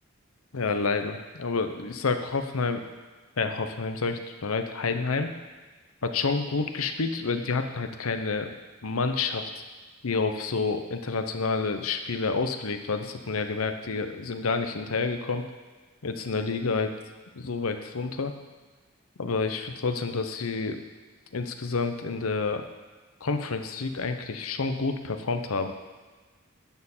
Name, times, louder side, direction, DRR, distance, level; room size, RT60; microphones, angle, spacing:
voice 1, 0.5-2.8 3.4-5.3 6.0-8.5 8.8-9.5 10.0-15.4 16.0-16.9 17.3-18.3 19.2-20.8 21.3-22.6 23.2-25.7, left 4 dB, 85° left, 7 dB, 0.8 m, -29 dB
11.0 x 4.5 x 7.3 m, 1.4 s
head